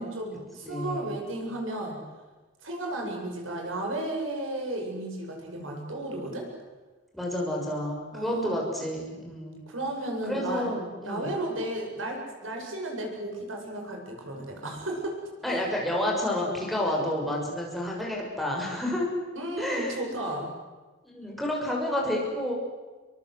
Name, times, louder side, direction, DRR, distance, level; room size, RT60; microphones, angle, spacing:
voice 1, 0.0-2.0 2.6-6.5 8.1-8.5 8.7-8.8 9.7-10.7 11.0-15.2 15.5-15.6 19.3-20.5, right 1 dB, 85° right, 1 dB, 7.8 m, -34 dB
voice 2, 0.7-1.1 7.1-9.6 10.3-11.3 15.4-19.1 19.6-20.0 21.1-22.5, left 1 dB, ahead, -2 dB, 6.7 m, -30 dB
28.5 x 24.0 x 8.0 m, 1.3 s
head